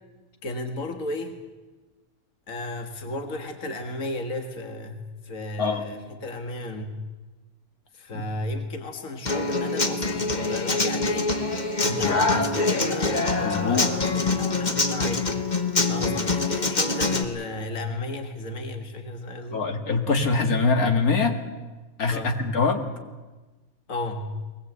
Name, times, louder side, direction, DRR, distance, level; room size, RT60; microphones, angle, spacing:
voice 1, 0.4-1.4 2.5-7.0 7.9-11.3 11.8-15.3 15.9-19.6 22.1-22.5 23.9-24.3, left 2 dB, 65° left, 5 dB, 2.1 m, -34 dB
Human voice / Acoustic guitar, 9.3-17.2, left 3 dB, 30° left, 1.5 m, -24 dB
voice 2, 11.9-12.4 13.4-13.9 19.5-21.4 22.0-22.9, left 4 dB, 80° left, 5 dB, 2.5 m, -24 dB
21.5 x 20.0 x 8.2 m, 1.2 s
omnidirectional pair, 1.5 m